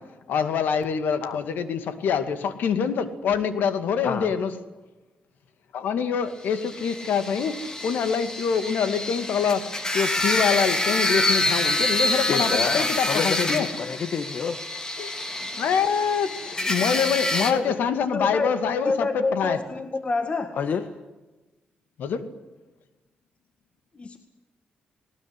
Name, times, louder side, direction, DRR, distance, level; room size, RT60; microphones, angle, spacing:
voice 1, 0.3-4.5 5.7-7.6 7.8-9.6 9.9-13.7 15.0-15.1 15.6-19.6 22.0-22.2, left 6 dB, 90° left, 2.3 m, -25 dB
sound 1, 6.6-17.5, left 1 dB, 20° left, 3.4 m, -27 dB
voice 2, 12.3-14.6 20.5-20.9, left 6 dB, 65° left, 1.6 m, -28 dB
voice 3, 18.1-20.6 24.0-24.2, left 3 dB, 40° left, 2.0 m, -27 dB
20.0 x 19.5 x 10.0 m
cardioid pair, 95°, 3 cm